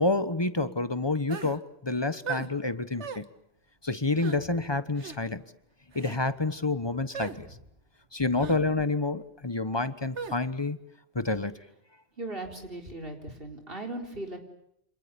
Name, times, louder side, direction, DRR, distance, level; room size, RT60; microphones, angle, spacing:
voice 1, 0.0-3.2 3.8-5.4 5.9-7.5 8.1-10.8 11.1-11.5, left 2 dB, 25° left, 13 dB, 1.2 m, -28 dB
sound 1, 1.3-1.6 2.3-2.5 3.0-3.2 4.2-4.4 5.0-5.2 5.9-6.2 7.1-7.4 8.4-8.6 10.2-10.4, right 6 dB, 85° right, 1.7 m, -37 dB
voice 2, 12.2-14.4, right 1 dB, 55° right, 3 dB, 4.1 m, -38 dB
29.0 x 27.0 x 7.0 m, 0.75 s
omnidirectional pair, 1.1 m